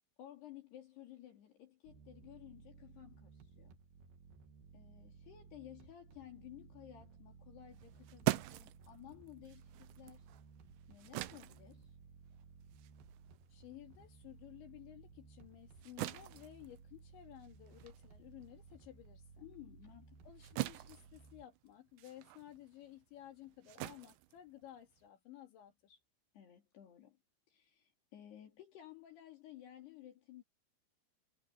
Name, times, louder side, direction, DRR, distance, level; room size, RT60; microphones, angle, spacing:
voice 1, 0.2-3.8 4.7-10.3 10.9-12.0 19.4-20.3 26.3-27.2 27.5-30.4, left 12 dB, 65° left, 4.9 m, -55 dB
sound 1, 1.8-21.5, right 5 dB, 60° right, 3.9 m, -59 dB
sound 2, 7.7-14.5 14.9-25.1, right 19 dB, 80° right, 3.1 m, -44 dB
voice 2, 13.5-19.5 20.2-26.0, left 13 dB, 80° left, 4.7 m, -55 dB
omnidirectional pair, 5.2 m